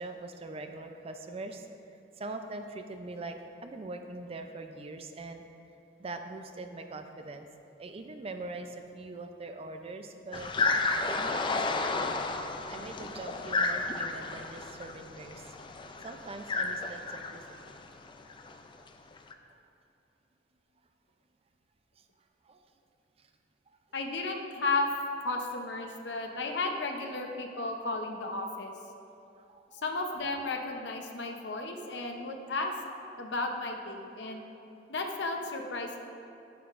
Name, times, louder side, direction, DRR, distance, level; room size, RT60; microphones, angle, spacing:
voice 1, 0.0-1.7 2.2-3.3 3.6-5.4 6.0-7.5 7.8-10.5 11.1-12.1 12.7-15.5 16.0-17.8 18.8-18.9 22.5-22.6 29.5-29.8, right 2 dB, 35° right, 6 dB, 0.4 m, -42 dB
sound 1, 10.3-18.6 18.9-19.3, left 3 dB, 30° left, 0.4 m, -32 dB
voice 2, 23.9-24.9 25.2-28.7 29.8-32.7 33.2-34.4 34.9-36.0, left 3 dB, 75° left, 3 dB, 0.7 m, -33 dB
9.2 x 7.2 x 2.5 m, 2.8 s
head